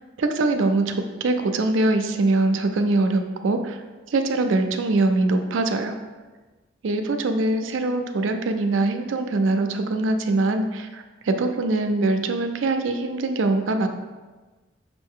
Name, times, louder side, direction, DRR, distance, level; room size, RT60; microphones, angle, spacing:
voice 1, 0.2-3.8 4.1-5.9 6.8-13.9, right 2 dB, 85° right, 6 dB, 0.4 m, -23 dB
5.4 x 2.5 x 3.6 m, 1.3 s
head